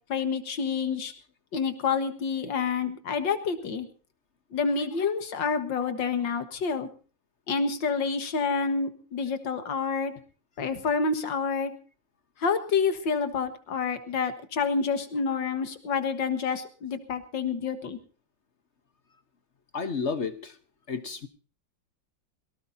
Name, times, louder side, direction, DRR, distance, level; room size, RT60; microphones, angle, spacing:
voice 1, 0.1-1.1 1.5-3.9 4.5-6.9 7.5-10.1 10.6-11.7 12.4-18.0, left 5 dB, 75° left, 10 dB, 2.2 m, -28 dB
voice 2, 19.7-20.6 20.9-21.3, left 5 dB, 45° left, 11 dB, 1.1 m, -31 dB
22.5 x 18.0 x 2.7 m, 0.37 s
omnidirectional pair, 2.0 m